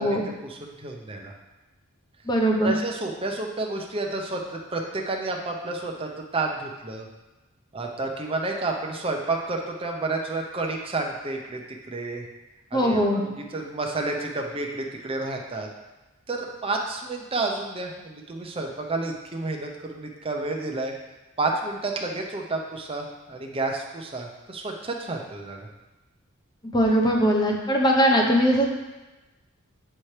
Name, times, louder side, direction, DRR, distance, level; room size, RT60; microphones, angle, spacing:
voice 1, 0.0-1.3 2.6-7.1 7.7-11.6 11.9-12.2 12.7-15.7 16.3-20.9 21.4-25.7, right 2 dB, 25° right, 1 dB, 0.7 m, -30 dB
voice 2, 2.3-2.7 12.7-13.2 26.7-28.7, equal, 20° left, 0 dB, 0.9 m, -20 dB
8.5 x 4.4 x 3.3 m, 1.1 s
head